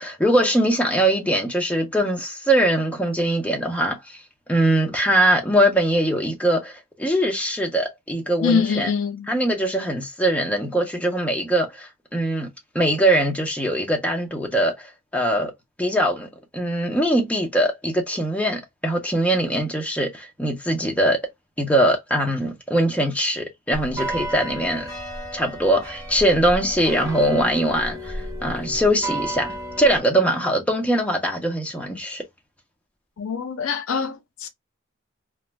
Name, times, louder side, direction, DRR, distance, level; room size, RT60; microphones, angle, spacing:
voice 1, 0.0-4.2 4.5-8.9 9.3-12.5 12.7-15.5 15.8-21.2 21.6-24.9 25.3-32.2, right 1 dB, 5° left, 0.6 m, -22 dB
voice 2, 8.4-9.3 33.2-34.5, left 6 dB, 85° left, 0.5 m, -24 dB
sound 1, 23.7-30.0, right 1 dB, 15° right, 1.2 m, -33 dB
2.5 x 2.1 x 3.0 m
head